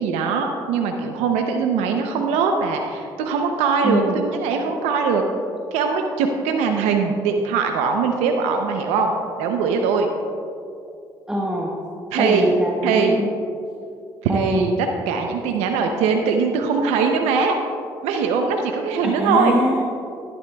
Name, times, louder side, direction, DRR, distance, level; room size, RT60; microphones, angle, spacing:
voice 1, 0.0-5.2 5.7-9.1 9.4-10.1 12.1-12.5 12.8-13.2 14.2-17.6 18.0-19.6, right 5 dB, 85° right, 4 dB, 0.6 m, -21 dB
voice 2, 3.8-4.2 11.3-11.7 12.2-13.3 14.3-14.7 19.0-19.8, equal, 5° right, -2 dB, 1.2 m, -23 dB
11.5 x 10.5 x 2.3 m, 2.5 s
supercardioid pair, 60°, 11 cm